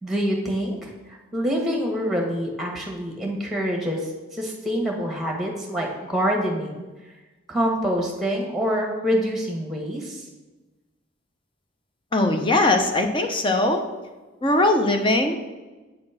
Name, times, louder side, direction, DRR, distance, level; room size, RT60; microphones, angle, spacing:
voice 1, 0.0-6.8 7.5-10.3, equal, ahead, 0 dB, 1.5 m, -26 dB
voice 2, 12.1-13.8 14.4-15.4, left 2 dB, 25° left, 5 dB, 0.7 m, -20 dB
8.7 x 4.3 x 5.7 m, 1.2 s
head